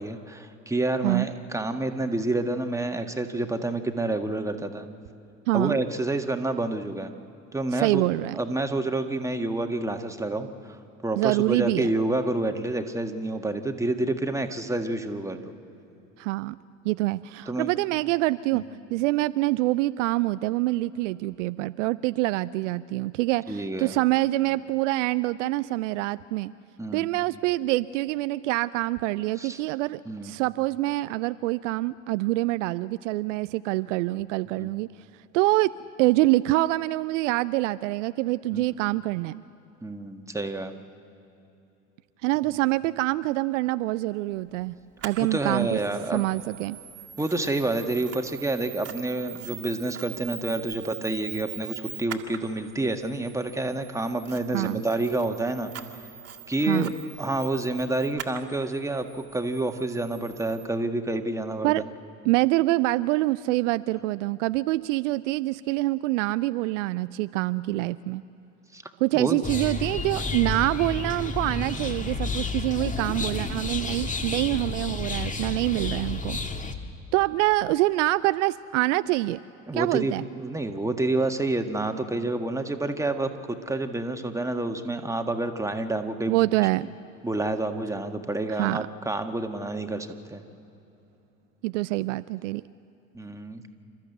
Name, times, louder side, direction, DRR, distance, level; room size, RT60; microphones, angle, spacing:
voice 1, 0.0-4.9 5.5-7.1 7.5-8.0 8.3-15.4 17.5-17.7 18.5-18.6 23.5-23.9 26.8-27.1 29.4-29.6 30.0-30.3 34.6-34.7 38.5-38.6 39.8-40.7 45.3-46.2 47.2-55.7 56.5-56.9 57.2-61.8 68.7-68.8 69.1-69.4 79.7-86.4 87.2-90.4 93.1-93.6, right 2 dB, 10° right, 6 dB, 1.7 m, -28 dB
voice 2, 5.5-5.8 7.7-8.3 11.2-11.9 16.2-16.6 16.8-18.6 18.9-26.5 26.9-34.9 35.3-35.7 36.0-39.4 42.2-44.8 45.0-45.8 46.1-46.8 54.5-54.8 56.7-56.9 61.6-61.8 62.2-68.2 69.0-76.4 77.1-79.4 79.7-80.2 86.3-86.9 88.5-88.9 91.6-92.6, right 18 dB, 65° right, 16 dB, 0.5 m, -25 dB
Camera, 45.0-60.7, right 9 dB, 35° right, 1.9 m, -43 dB
sound 1, 69.4-76.7, left 3 dB, 20° left, 1.8 m, -31 dB
29.0 x 13.5 x 8.0 m, 2.9 s
figure-of-eight pair, 65°, 40 cm